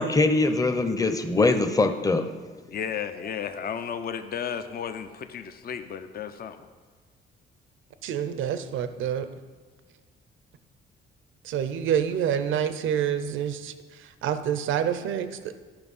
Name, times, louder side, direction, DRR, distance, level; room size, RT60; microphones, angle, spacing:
voice 1, 0.0-2.2, left 3 dB, 15° left, 8 dB, 0.8 m, -22 dB
voice 2, 2.7-6.6, left 7 dB, 50° left, 9 dB, 0.6 m, -33 dB
voice 3, 8.0-9.3 11.4-15.6, right 9 dB, 80° right, 11 dB, 0.6 m, -27 dB
11.5 x 5.8 x 5.5 m, 1.4 s
cardioid pair, 90°, 20 cm